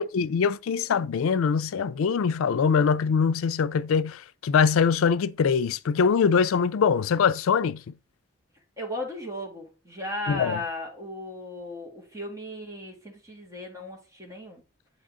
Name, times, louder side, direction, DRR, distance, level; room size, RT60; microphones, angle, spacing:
voice 1, 0.0-7.8 10.3-10.6, left 6 dB, 80° left, 0.4 m, -23 dB
voice 2, 8.8-14.6, left 1 dB, 15° right, 2.0 m, -36 dB
8.0 x 3.8 x 3.6 m
head